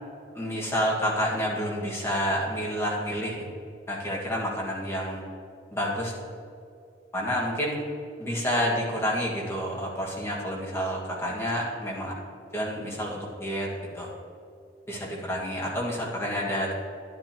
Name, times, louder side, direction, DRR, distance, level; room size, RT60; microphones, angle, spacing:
voice 1, 0.3-3.5 3.9-5.2 5.7-6.1 7.1-7.9 8.2-12.1 12.5-14.1 14.9-16.7, equal, 15° left, -4 dB, 1.8 m, -29 dB
11.0 x 10.0 x 3.0 m, 2.5 s
head